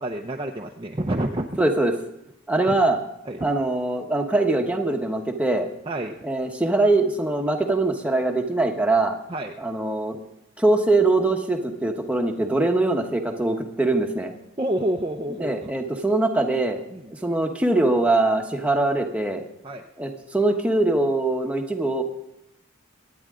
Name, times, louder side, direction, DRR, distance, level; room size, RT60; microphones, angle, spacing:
voice 1, 0.0-1.6 2.6-2.7 3.3-3.4 5.9-6.2 9.3-9.5 14.6-15.7 16.9-17.1 19.6-19.8, right 1 dB, 25° right, 1 dB, 0.6 m, -28 dB
voice 2, 1.6-1.9 2.5-3.0 3.4-5.7 6.2-9.2 9.6-10.2 10.6-14.3 15.4-16.8 17.1-19.4 20.0-22.0, right 2 dB, 5° right, 3 dB, 1.1 m, -22 dB
25.0 x 9.5 x 3.7 m, 0.87 s
head